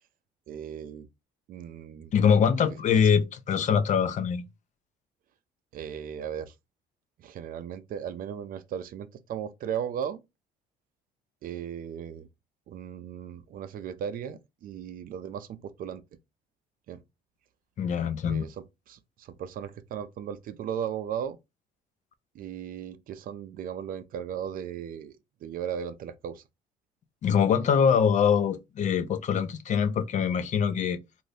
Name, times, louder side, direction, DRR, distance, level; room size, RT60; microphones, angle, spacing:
voice 1, 0.5-1.1 1.5-2.1 2.9-3.1 5.7-6.5 7.2-10.2 11.4-12.3 12.7-16.0 16.9-17.0 18.3-21.4 22.3-26.4, right 8 dB, 55° right, 0.5 m, -36 dB
voice 2, 2.1-4.4 17.8-18.4 27.2-31.0, left 7 dB, 45° left, 0.4 m, -23 dB
2.6 x 2.6 x 3.2 m
cardioid pair, 110°, 17 cm